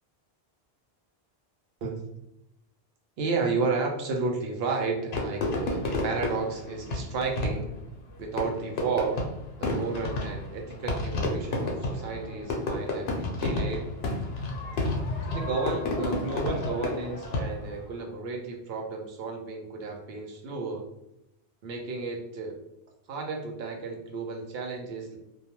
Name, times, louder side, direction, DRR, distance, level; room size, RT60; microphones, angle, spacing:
voice 1, 3.2-7.8 8.2-9.2 9.6-13.9 15.3-20.8 21.6-22.6 23.1-25.2, right 4 dB, 70° right, 2 dB, 0.8 m, -32 dB
Fireworks, 5.1-17.8, left 2 dB, 75° left, 0.8 m, -31 dB
2.3 x 2.2 x 2.8 m, 0.85 s
omnidirectional pair, 1.1 m